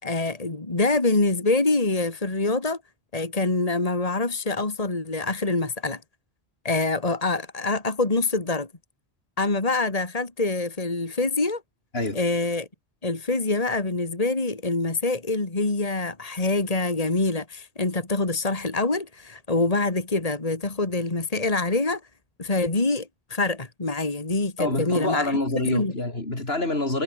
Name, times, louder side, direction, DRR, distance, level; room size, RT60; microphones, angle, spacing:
voice 1, 0.0-2.8 3.1-6.0 6.6-8.7 9.4-11.6 12.1-12.7 13.0-22.0 22.4-25.4 25.6-25.9, left 3 dB, 35° left, 2.5 m, -25 dB
voice 2, 24.6-27.0, left 2 dB, 70° left, 5.1 m, -26 dB
omnidirectional pair, 1.1 m